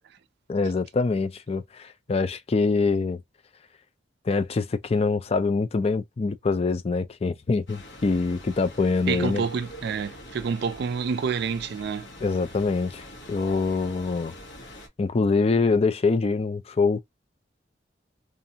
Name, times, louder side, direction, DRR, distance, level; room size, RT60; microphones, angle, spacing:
voice 1, 0.5-3.2 4.3-9.4 12.2-14.3 15.0-17.0, left 4 dB, 35° left, 0.4 m, -24 dB
sound 1, 7.7-14.9, left 1 dB, 85° left, 1.1 m, -44 dB
voice 2, 9.1-12.1, right 6 dB, 65° right, 0.3 m, -28 dB
2.5 x 2.5 x 2.8 m
head